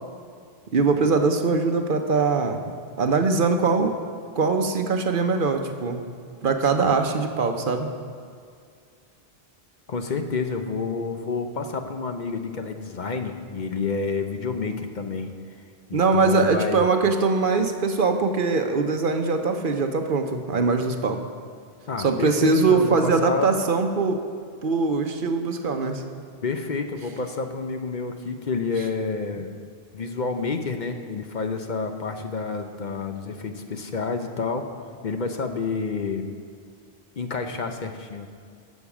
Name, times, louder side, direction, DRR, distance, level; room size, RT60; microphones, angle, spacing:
voice 1, 0.7-3.9 4.3-6.0 6.4-7.9 15.9-21.3 22.0-24.2 24.6-26.0, right 4 dB, 60° right, 6 dB, 0.9 m, -22 dB
voice 2, 9.9-15.3 15.9-16.9 21.9-23.5 26.4-29.5 29.9-34.7 35.0-36.3 37.2-38.3, left 4 dB, 50° left, 6 dB, 0.8 m, -29 dB
12.0 x 6.3 x 7.1 m, 2.2 s
omnidirectional pair, 1.0 m